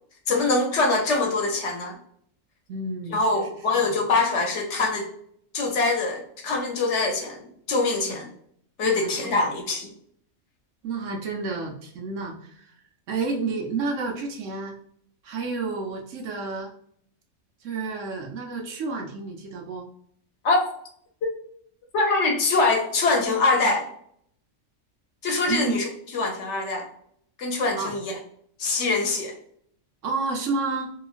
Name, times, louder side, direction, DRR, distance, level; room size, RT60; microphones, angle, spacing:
voice 1, 0.3-2.0 3.1-5.0 5.5-7.4 7.7-8.3 8.8-9.9 20.4-20.6 21.9-23.9 25.2-25.9 26.1-26.9 27.4-28.2 28.6-29.3, left 3 dB, 65° left, 2 dB, 0.9 m, -23 dB
voice 2, 2.7-3.5 3.8-4.0 8.1-8.2 8.8-9.5 10.8-12.7 13.1-14.8 15.2-16.7 17.6-19.9 25.5-25.8 27.8-27.9 30.0-30.9, right 3 dB, 65° right, 1 dB, 1.0 m, -30 dB
2.9 x 2.3 x 2.3 m, 0.66 s
omnidirectional pair, 1.5 m